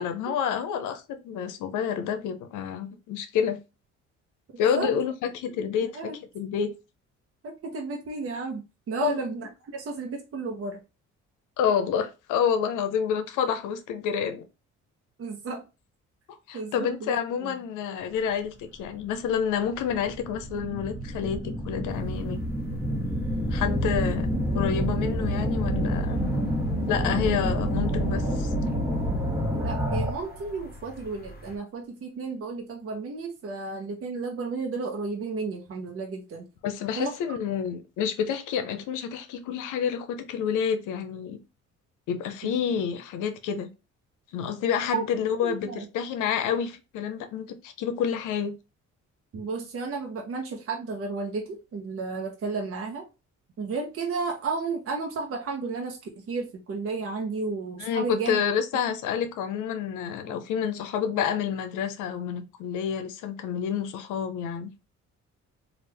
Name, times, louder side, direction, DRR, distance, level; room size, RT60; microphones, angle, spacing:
voice 1, 0.0-3.6 4.6-6.7 9.0-9.2 11.6-14.4 16.5-22.4 23.5-24.3 24.5-26.2 26.9-28.5 36.6-41.4 42.1-43.7 44.3-48.6 57.8-64.7, left 8 dB, 90° left, 0.6 m, -29 dB
voice 2, 5.8-6.2 7.4-10.8 15.2-15.7 16.5-17.5 29.5-36.5 37.0-37.1 42.4-42.5 44.9-45.0 45.4-45.9 49.3-53.0 53.6-56.0 56.3-58.4 60.3-60.4, right 4 dB, 50° right, 0.8 m, -33 dB
sound 1, 18.9-19.0 19.7-30.4, equal, 10° right, 1.0 m, -28 dB
sound 2, 21.9-31.6, left 1 dB, 30° left, 0.8 m, -46 dB
3.3 x 2.4 x 3.3 m
cardioid pair, 90°, 30 cm